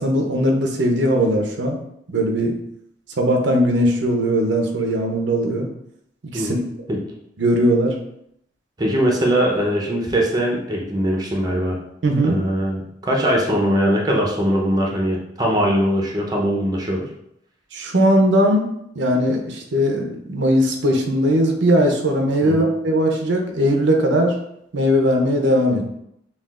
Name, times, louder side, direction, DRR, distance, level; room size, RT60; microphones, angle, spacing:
voice 1, 0.0-1.8 2.1-2.5 3.2-5.7 6.2-6.6 7.4-8.0 12.0-12.4 17.7-24.4 24.7-25.8, equal, 90° right, 2 dB, 0.6 m, -19 dB
voice 2, 8.8-11.8 12.2-17.0 22.4-22.7, equal, 20° right, -1 dB, 0.6 m, -21 dB
5.6 x 2.4 x 2.4 m, 0.76 s
head